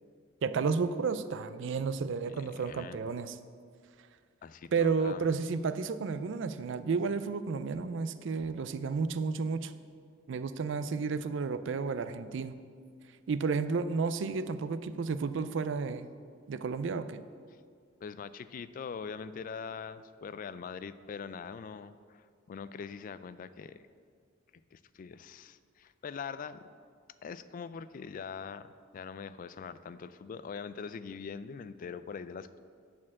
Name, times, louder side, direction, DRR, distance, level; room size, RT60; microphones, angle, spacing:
voice 1, 0.4-3.4 4.7-9.7 10.3-12.5 13.3-16.1 16.5-17.2, right 5 dB, 65° right, 11 dB, 0.4 m, -32 dB
voice 2, 2.3-3.0 4.4-5.3 18.0-23.8 24.7-26.6 27.2-32.6, left 6 dB, 45° left, 13 dB, 0.3 m, -43 dB
8.6 x 4.4 x 7.2 m, 2.1 s
head